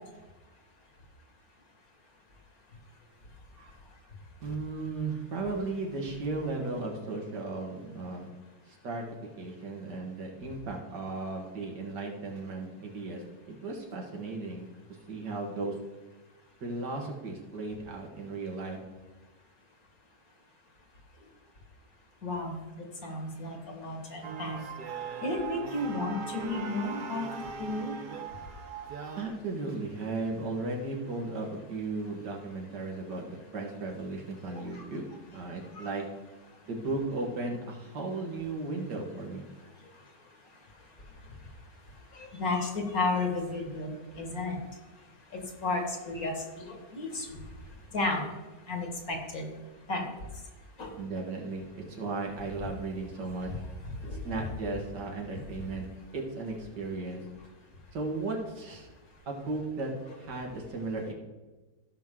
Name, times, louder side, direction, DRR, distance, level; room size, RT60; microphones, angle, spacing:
voice 1, 4.4-8.3 8.7-9.0 9.4-14.7 15.1-15.8 16.6-18.8 29.2-36.0 36.7-39.4 51.0-53.5 54.2-55.9 56.1-57.2 57.9-58.9 59.3-59.9 60.2-61.1, right 3 dB, 85° right, 0 dB, 2.3 m, -35 dB
voice 2, 22.2-22.6 23.0-24.6 25.2-27.3 27.6-28.0 34.5-34.8 35.8-35.9 42.2-44.6 45.6-47.4 47.9-48.3 48.7-49.5 49.9-50.1 50.8-50.9 54.1-54.4, left 2 dB, 60° left, 2 dB, 2.2 m, -33 dB
sound 1, 24.2-29.3, right 5 dB, 55° right, 0.5 m, -40 dB
15.5 x 6.0 x 3.8 m, 1.2 s
omnidirectional pair, 1.8 m